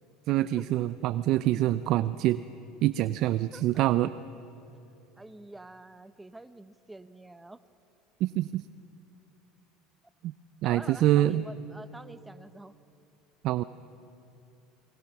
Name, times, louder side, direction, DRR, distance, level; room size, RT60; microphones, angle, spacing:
voice 1, 0.3-2.4 2.8-4.1 8.2-8.6 10.2-10.3 10.6-11.4 13.4-13.6, right 14 dB, 60° right, 14 dB, 0.5 m, -25 dB
voice 2, 3.5-3.8 5.2-7.6 10.6-12.7, right 2 dB, 10° right, 12 dB, 1.0 m, -47 dB
28.5 x 21.5 x 6.0 m, 2.8 s
hypercardioid pair, 90°, 0 cm